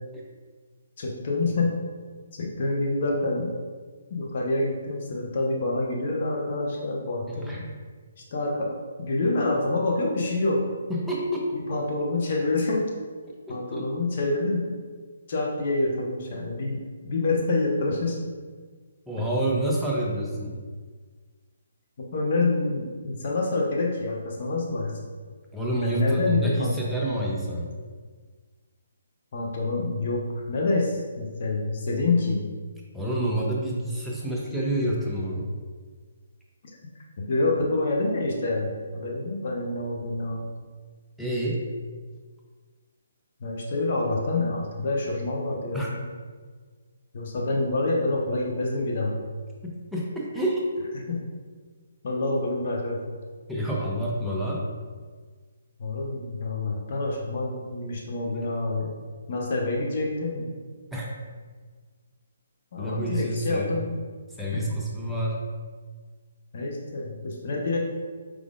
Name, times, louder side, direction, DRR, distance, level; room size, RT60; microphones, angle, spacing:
voice 1, 1.0-1.7 2.3-3.5 4.1-7.6 8.3-10.7 11.5-12.9 13.5-14.8 15.3-18.2 22.0-24.9 25.8-26.7 29.3-32.4 37.3-40.5 43.4-46.0 47.1-49.2 51.1-51.2 52.0-53.0 55.8-58.9 59.3-60.5 62.7-63.9 64.5-64.6 66.5-67.8, left 2 dB, 50° left, -1 dB, 0.8 m, -27 dB
voice 2, 7.3-7.7 10.9-11.5 13.3-13.9 19.1-20.6 25.5-27.7 32.9-35.5 41.2-41.6 45.7-45.9 49.9-50.7 53.5-54.6 58.3-58.5 60.9-61.1 62.8-63.7 64.4-65.4, right 1 dB, ahead, -5 dB, 0.7 m, -28 dB
4.7 x 3.6 x 2.5 m, 1.5 s
figure-of-eight pair, 140°, 0 cm